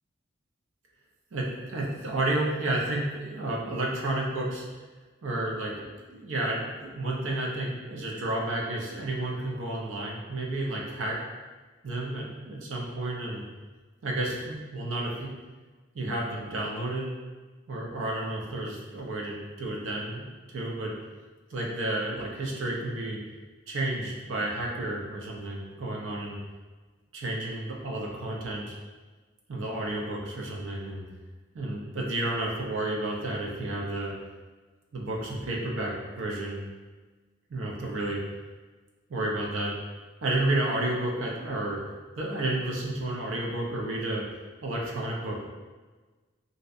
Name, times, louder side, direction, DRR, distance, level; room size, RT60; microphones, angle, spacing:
voice 1, 1.3-4.6 5.2-11.2 11.8-13.4 14.0-15.3 15.9-17.1 17.7-20.9 21.5-23.2 23.7-26.4 27.1-28.8 29.5-31.0 31.5-34.1 34.9-36.7 37.5-38.2 39.1-39.7 40.2-41.8 42.2-44.2 44.6-45.4, right 1 dB, 70° right, -2 dB, 0.5 m, -31 dB
2.6 x 2.1 x 2.4 m, 1.3 s
head